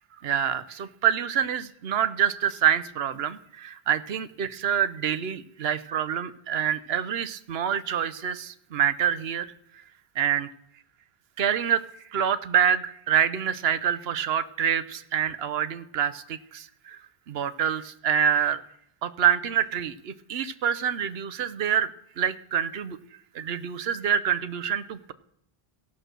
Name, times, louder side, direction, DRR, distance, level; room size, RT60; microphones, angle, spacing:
voice 1, 0.2-9.5 10.2-10.5 11.4-11.8 12.1-17.0 17.3-18.6 19.0-21.9 22.2-23.0 23.3-25.1, right 9 dB, 80° right, 14 dB, 0.9 m, -26 dB
16.0 x 6.1 x 6.6 m, 0.73 s
omnidirectional pair, 1.0 m